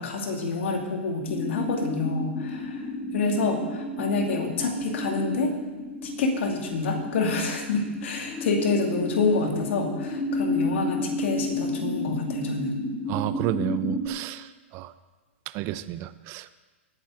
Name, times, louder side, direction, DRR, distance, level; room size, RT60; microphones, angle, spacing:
voice 1, 0.0-2.8 3.1-5.5 6.0-12.7, left 3 dB, 65° left, 2 dB, 2.4 m, -27 dB
sound 1, 1.3-14.1, left 2 dB, 15° left, 2.0 m, -32 dB
voice 2, 13.1-14.5 14.7-14.9 15.5-16.5, right 15 dB, 35° right, 13 dB, 0.6 m, -31 dB
17.5 x 8.9 x 3.8 m, 1.3 s
hypercardioid pair, 120°, 7 cm